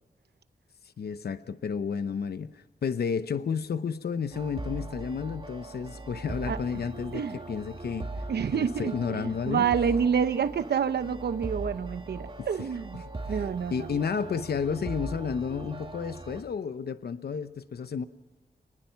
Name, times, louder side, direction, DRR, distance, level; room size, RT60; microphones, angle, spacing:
voice 1, 1.0-8.1 8.5-9.7 12.4-12.5 13.0-13.4 13.7-18.0, left 6 dB, 70° left, 0.9 m, -32 dB
sound 1, 4.3-16.4, right 2 dB, 30° right, 2.6 m, -39 dB
voice 2, 8.3-13.0 13.3-13.9, right 7 dB, 75° right, 0.9 m, -28 dB
28.5 x 20.0 x 5.8 m
wide cardioid pair, 125°, 17 cm